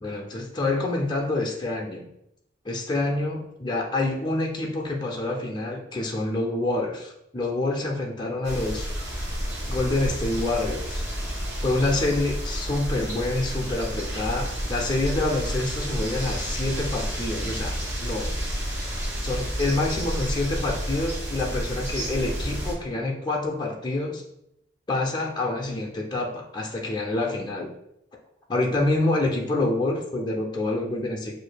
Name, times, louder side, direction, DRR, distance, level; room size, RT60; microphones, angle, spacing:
voice 1, 0.0-2.1 2.6-8.9 9.7-11.1 11.6-18.3 19.2-24.2 24.9-27.7 28.5-31.3, left 2 dB, 25° left, -1 dB, 0.5 m, -27 dB
sound 1, 8.4-22.7, equal, 15° right, 1.0 m, -30 dB
6.7 x 2.5 x 2.2 m, 0.79 s
head